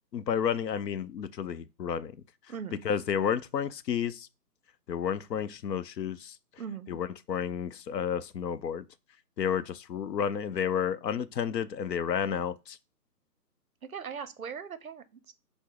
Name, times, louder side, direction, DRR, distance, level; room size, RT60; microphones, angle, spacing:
voice 1, 0.1-2.1 2.8-4.3 4.9-6.4 6.9-8.8 9.4-12.8, left 8 dB, 85° left, 0.6 m, -31 dB
voice 2, 2.5-2.8 6.6-6.9 13.9-15.3, right 7 dB, 60° right, 0.5 m, -39 dB
5.9 x 2.0 x 3.8 m
hypercardioid pair, 180°, 49 cm